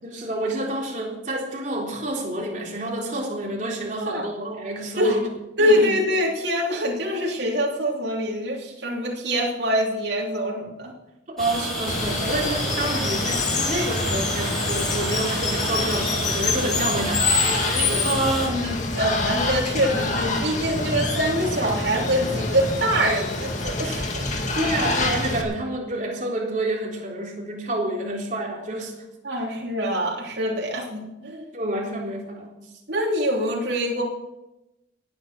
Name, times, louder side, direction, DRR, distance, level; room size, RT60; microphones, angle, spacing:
voice 1, 0.0-5.3 5.6-5.9 11.3-18.4 24.6-29.0 31.5-32.6, right 1 dB, 40° right, -1 dB, 3.7 m, -29 dB
voice 2, 5.6-10.9 18.0-24.3 29.2-31.5 32.9-34.0, equal, 60° right, -3 dB, 3.3 m, -24 dB
sound 1, 11.4-18.5, right 1 dB, ahead, 6.8 m, -30 dB
Water, 11.9-25.4, left 3 dB, 40° left, 2.2 m, -26 dB
18.5 x 9.9 x 6.0 m, 0.94 s
head